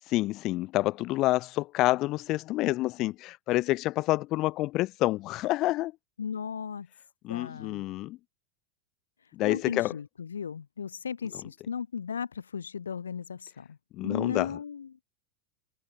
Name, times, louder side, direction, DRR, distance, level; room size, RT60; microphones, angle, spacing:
voice 1, 0.0-5.9 7.2-8.2 9.3-9.9 14.0-14.5, left 18 dB, 35° left, 1.9 m, -28 dB
voice 2, 6.2-6.9 7.3-7.8 9.4-13.8 14.0-15.0, left 7 dB, 70° left, 5.1 m, -36 dB
figure-of-eight pair, 90°, 0 cm